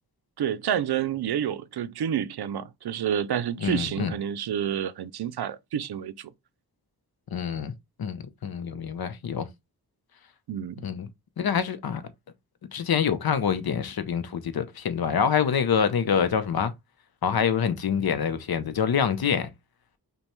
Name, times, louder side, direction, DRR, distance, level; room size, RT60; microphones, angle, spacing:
voice 1, 0.4-6.3 10.5-10.8, right 9 dB, 85° right, 0.5 m, -29 dB
voice 2, 3.6-4.1 7.3-7.7 8.0-9.5 10.8-11.1 11.4-12.0 12.7-16.7 17.2-19.5, left 7 dB, 70° left, 0.7 m, -26 dB
5.3 x 2.2 x 3.0 m
wide cardioid pair, 105°, 37 cm